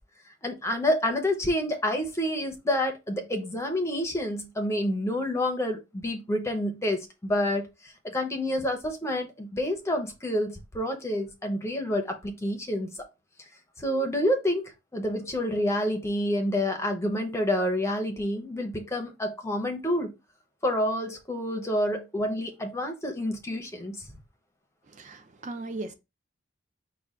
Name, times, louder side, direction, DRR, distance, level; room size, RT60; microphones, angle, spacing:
voice 1, 0.4-7.7 8.0-12.9 13.8-20.1 20.6-24.1, left 1 dB, 15° left, 0.6 m, -28 dB
voice 2, 24.9-25.9, right 2 dB, 35° right, 0.4 m, -37 dB
5.3 x 2.2 x 3.5 m
head